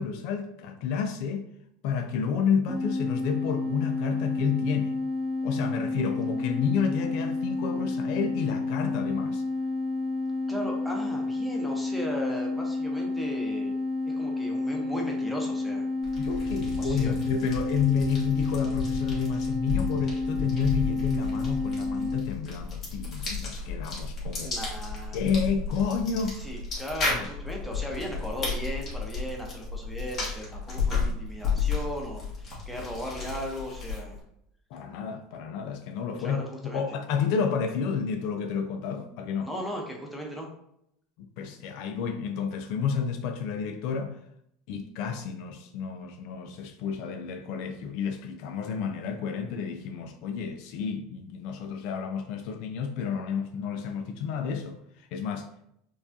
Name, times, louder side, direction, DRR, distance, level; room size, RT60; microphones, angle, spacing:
voice 1, 0.0-1.5 1.8-5.0 5.4-9.4 16.2-24.6 25.1-26.5 27.1-27.3 34.7-36.4 36.7-39.5 41.2-44.2 44.7-55.7, left 6 dB, 60° left, 0.3 m, -30 dB
sound 1, 2.7-22.2, left 2 dB, 40° right, 1.0 m, -30 dB
voice 2, 10.5-13.7 14.0-15.9 16.8-17.1 24.4-25.2 26.3-34.2 36.2-36.8 39.4-40.5, equal, ahead, 0.8 m, -37 dB
sound 2, 16.0-34.2, left 4 dB, 35° left, 1.4 m, -33 dB
4.7 x 2.3 x 2.6 m
supercardioid pair, 130°, 0 cm